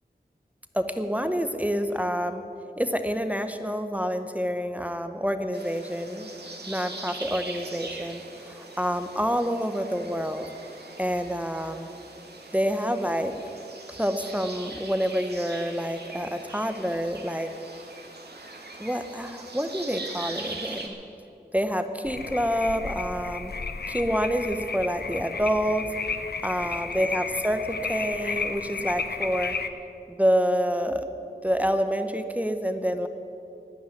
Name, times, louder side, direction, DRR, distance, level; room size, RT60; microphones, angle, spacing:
voice 1, 0.7-2.4 2.8-6.3 6.7-10.5 11.0-11.9 12.5-13.3 13.9-17.5 18.8-20.9 21.5-23.5 23.9-25.8 26.4-29.5 30.1-31.1 31.4-33.1, equal, 10° right, 8 dB, 0.9 m, -27 dB
sound 1, 5.5-20.9, right 2 dB, 75° right, 1.8 m, -41 dB
sound 2, 22.1-29.7, left 4 dB, 70° left, 0.8 m, -33 dB
12.0 x 10.0 x 10.0 m, 2.7 s
wide cardioid pair, 60°, 17 cm